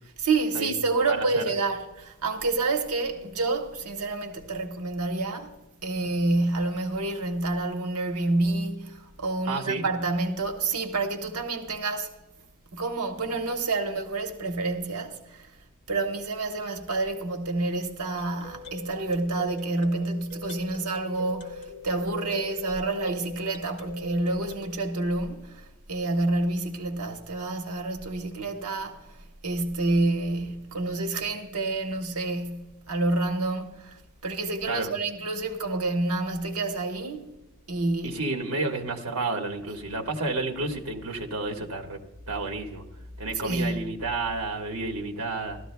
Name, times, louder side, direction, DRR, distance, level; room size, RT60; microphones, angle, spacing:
voice 1, 0.2-12.1 12.7-15.5 15.9-29.2 29.4-37.3 37.7-38.2 43.4-43.8, right 2 dB, 85° right, 1.2 m, -28 dB
voice 2, 1.1-1.4 9.5-9.8 34.7-34.9 38.0-42.0 42.3-42.8 43.2-45.6, right 3 dB, 65° right, 1.5 m, -31 dB
sound 1, 18.0-24.7, left 3 dB, 55° left, 2.0 m, -42 dB
16.5 x 13.0 x 2.2 m
head